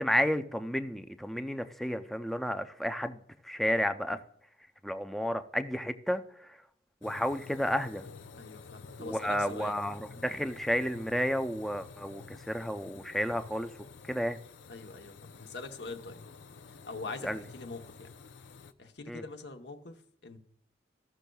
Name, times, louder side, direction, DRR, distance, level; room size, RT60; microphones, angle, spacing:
voice 1, 0.0-3.2 3.4-4.2 4.8-6.2 7.0-8.0 9.0-13.7 14.1-14.4 17.2-17.4 19.1-19.2, equal, ahead, 8 dB, 0.5 m, -31 dB
sound 1, 7.0-18.7, left 5 dB, 90° left, 0.6 m, -51 dB
voice 2, 8.3-9.8 14.7-16.2 16.7-18.1 18.8-20.4, left 3 dB, 70° left, 6 dB, 0.9 m, -43 dB
15.0 x 6.3 x 2.3 m, 0.72 s
head